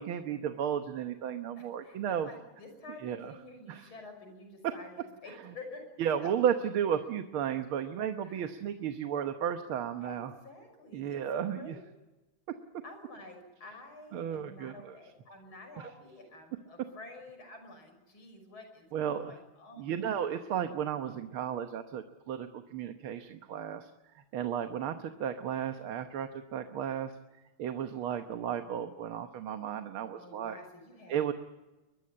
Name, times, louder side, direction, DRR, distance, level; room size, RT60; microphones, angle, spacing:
voice 1, 0.0-2.3 3.0-3.3 3.7-3.8 6.0-10.3 10.9-11.8 14.1-14.7 15.8-15.9 18.9-19.3 19.8-23.9 24.3-27.1 27.6-30.6 31.1-31.3, right 9 dB, 80° right, 7 dB, 1.9 m, -33 dB
voice 2, 1.6-6.0 6.2-6.3 8.2-8.5 10.0-11.2 11.5-11.8 12.8-20.0 30.2-31.3, left 2 dB, 75° left, 6 dB, 6.8 m, -49 dB
22.5 x 22.0 x 8.6 m, 1.1 s
omnidirectional pair, 2.3 m